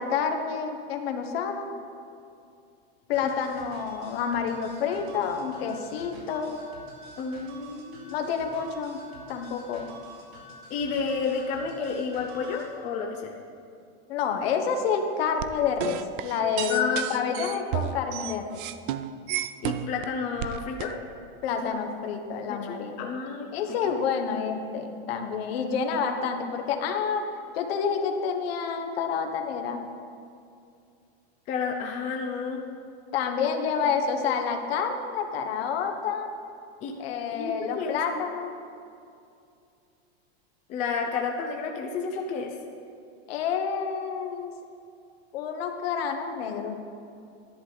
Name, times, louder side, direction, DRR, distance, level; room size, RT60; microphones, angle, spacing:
voice 1, 0.0-1.7 3.1-6.6 8.1-9.0 9.3-9.9 14.1-18.4 21.4-23.1 23.5-27.2 27.5-29.8 33.1-36.3 37.0-38.5 43.3-44.5 45.3-46.7, left 6 dB, 65° left, 5 dB, 1.2 m, -28 dB
sound 1, 3.1-12.7, right 1 dB, 70° right, 2.8 m, -48 dB
voice 2, 7.2-8.3 10.7-13.3 16.7-17.5 19.6-20.9 21.7-21.8 22.5-23.9 31.5-32.7 36.8-37.0 37.3-38.0 40.7-42.5, left 5 dB, 25° left, 1 dB, 0.6 m, -31 dB
sound 2, 15.4-20.0 20.4-21.0, right 11 dB, 50° right, 0.4 m, -32 dB
11.0 x 9.9 x 4.0 m, 2.5 s
supercardioid pair, 165°, 32 cm